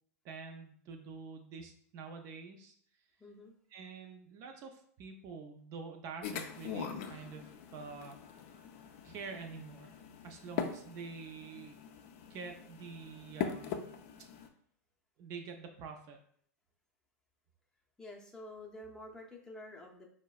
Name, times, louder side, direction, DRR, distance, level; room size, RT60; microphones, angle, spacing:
voice 1, 0.2-2.7 3.7-8.6 9.0-10.0 10.2-11.8 12.3-13.8 15.2-16.2, right 5 dB, 40° right, 3 dB, 0.4 m, -47 dB
voice 2, 3.2-3.5 18.0-20.1, left 1 dB, 5° left, -1 dB, 0.6 m, -49 dB
sound 1, 6.2-14.5, left 7 dB, 50° left, 0.4 m, -42 dB
4.5 x 2.1 x 2.3 m, 0.62 s
hypercardioid pair, 100°, 9 cm